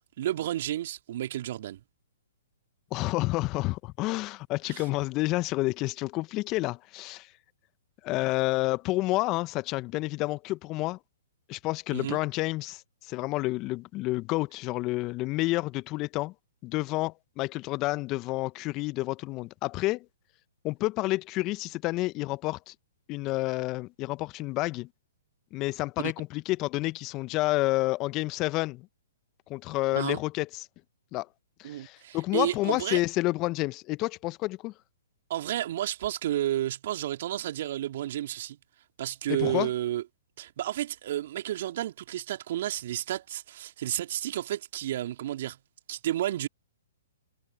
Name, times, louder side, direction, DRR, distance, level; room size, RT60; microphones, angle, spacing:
voice 1, 0.0-1.8 4.7-4.8 11.9-12.2 29.9-30.2 31.6-33.0 35.3-38.6 39.0-40.0 40.4-45.6 45.9-46.5, right 13 dB, 55° right, 2.5 m, -31 dB
voice 2, 2.9-7.3 8.0-11.0 11.5-16.3 16.6-20.0 20.6-22.7 23.1-24.9 25.5-28.9 29.5-30.7 31.1-31.3 31.6-34.7 39.3-39.7, left 20 dB, 30° left, 1.0 m, -29 dB
figure-of-eight pair, 120°, 0 cm